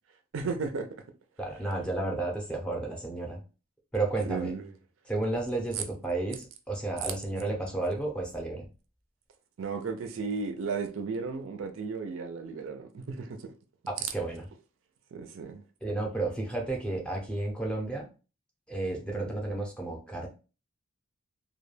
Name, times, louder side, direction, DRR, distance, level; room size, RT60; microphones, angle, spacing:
voice 1, 0.3-0.9 4.3-4.7 9.6-13.5 15.1-15.6 19.1-19.2, right 4 dB, 70° right, 0.4 m, -34 dB
voice 2, 1.4-3.4 3.9-4.5 5.1-8.7 14.0-14.4 15.8-18.1 18.7-20.3, right 2 dB, 5° left, 0.5 m, -32 dB
2.2 x 2.2 x 3.2 m
head